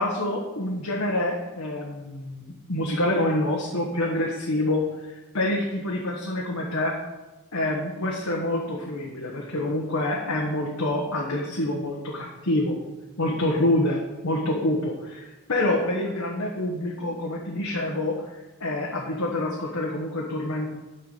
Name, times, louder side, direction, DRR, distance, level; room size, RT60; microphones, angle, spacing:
voice 1, 0.0-6.9 7.5-12.8 13.2-14.0 14.2-20.7, left 1 dB, 85° left, -2 dB, 1.3 m, -27 dB
6.8 x 5.7 x 6.9 m, 1.1 s
head